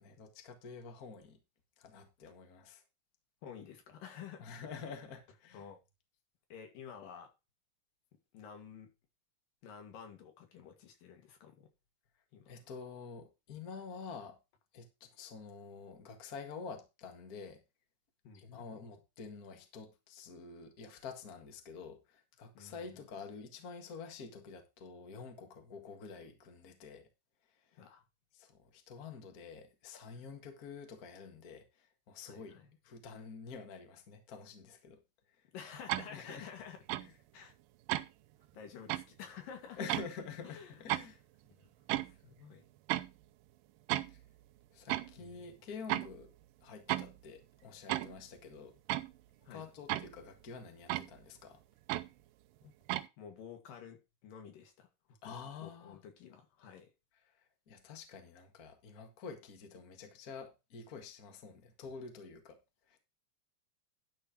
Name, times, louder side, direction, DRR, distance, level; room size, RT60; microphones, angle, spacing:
voice 1, 0.0-1.4 1.8-2.8 4.4-5.6 12.4-14.4 14.7-17.6 18.3-27.1 27.7-27.8 28.3-35.0 35.4-35.5 36.1-36.5 37.0-37.2 39.8-41.2 44.1-44.2 44.7-46.3 46.6-48.7 49.5-51.6 55.2-56.0 57.3-62.6 62.9-63.0, left 5 dB, 35° left, 1.7 m, -48 dB
voice 2, 3.4-4.5 5.5-5.8 6.5-7.3 8.3-8.9 9.6-11.7 12.3-12.5 18.3-18.6 22.6-23.0 27.7-28.0 32.3-32.7 35.5-36.8 37.3-37.5 38.5-39.8 40.4-41.1 41.6-41.7 42.0-42.7 45.2-45.3 49.5-49.7 52.6-52.7 53.2-54.9 55.2-56.9, left 7 dB, 80° left, 3.6 m, -51 dB
sound 1, 35.9-36.1 36.9-37.1 37.9-38.1 38.9-39.0 39.9-40.1 40.9-41.1 41.9-42.1 42.9-43.1 43.9-44.3 44.9-45.2 45.9-46.3 46.9-47.2 47.9-48.2 48.9-49.1 49.9-50.3 50.9-51.1 51.9-52.1 52.9-53.1, right 16 dB, 85° right, 2.3 m, -34 dB
12.0 x 4.3 x 5.8 m
omnidirectional pair, 3.9 m